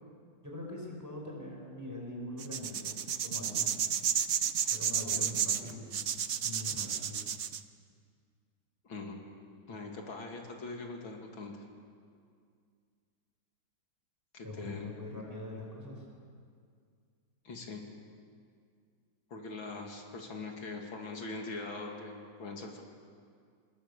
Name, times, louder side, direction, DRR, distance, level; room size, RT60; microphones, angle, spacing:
voice 1, 0.4-3.7 4.7-6.1 6.4-7.2 14.4-16.0, left 2 dB, 10° right, -1 dB, 5.2 m, -43 dB
sound 1, 2.4-7.6, right 8 dB, 60° right, 0.7 m, -31 dB
voice 2, 8.8-9.2 9.7-11.5 14.3-14.9 17.4-17.8 19.3-22.8, left 3 dB, 80° left, 1 dB, 3.2 m, -42 dB
27.5 x 20.0 x 7.0 m, 2.2 s
omnidirectional pair, 2.1 m